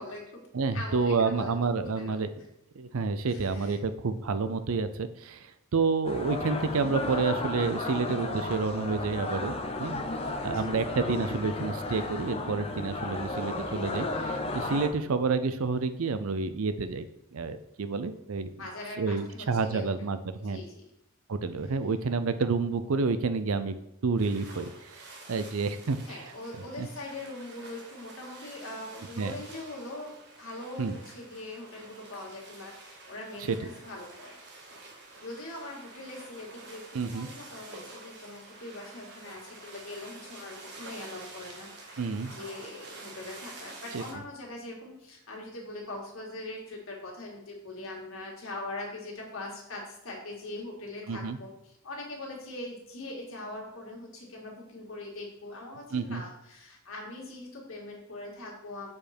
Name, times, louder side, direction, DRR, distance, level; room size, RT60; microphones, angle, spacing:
voice 1, 0.0-0.4 0.7-1.5 2.0-2.2 3.3-3.8 10.3-10.5 18.6-19.9 20.4-20.9 26.1-36.8 37.1-58.9, left 2 dB, 60° left, -1 dB, 2.1 m, -42 dB
voice 2, 0.5-2.3 2.7-10.1 10.4-17.1 17.3-18.5 19.0-20.6 21.3-23.7 24.0-25.0 25.3-26.2 26.8-26.9 29.2-29.4 30.8-31.0 33.5-33.6 36.9-37.3 42.0-42.3 43.9-44.0 51.1-51.4 55.9-56.2, right 4 dB, 70° right, 11 dB, 0.5 m, -29 dB
sound 1, 6.0-14.9, left 2 dB, 25° left, 0.6 m, -34 dB
sound 2, 24.2-44.1, right 3 dB, 50° right, 1.4 m, -48 dB
7.1 x 5.2 x 4.3 m, 0.86 s
head